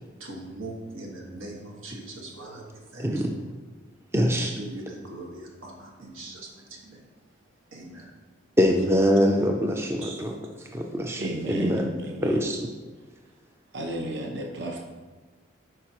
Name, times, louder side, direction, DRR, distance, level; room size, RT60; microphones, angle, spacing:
voice 1, 0.2-3.3 4.1-7.1 7.7-8.1 10.0-10.3, right 2 dB, 80° right, -1 dB, 1.5 m, -41 dB
voice 2, 3.0-3.5 4.1-4.5 8.6-10.3 10.7-11.2 11.5-11.9 12.2-12.6, equal, 10° right, 2 dB, 0.4 m, -23 dB
voice 3, 11.2-12.5 13.7-14.8, right 1 dB, 55° right, 1 dB, 0.8 m, -34 dB
10.5 x 4.9 x 2.9 m, 1.3 s
head